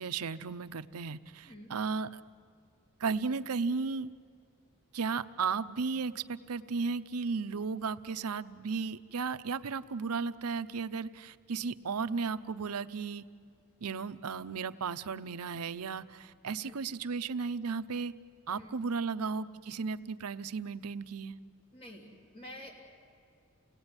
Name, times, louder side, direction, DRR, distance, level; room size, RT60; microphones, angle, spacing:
voice 1, 0.0-2.2 3.0-4.1 4.9-13.3 13.8-18.1 18.5-21.4, right 5 dB, 90° right, 13 dB, 0.7 m, -35 dB
voice 2, 21.7-22.1 22.3-22.8, left 1 dB, 25° left, 1 dB, 3.2 m, -48 dB
28.5 x 19.0 x 9.7 m, 2.3 s
head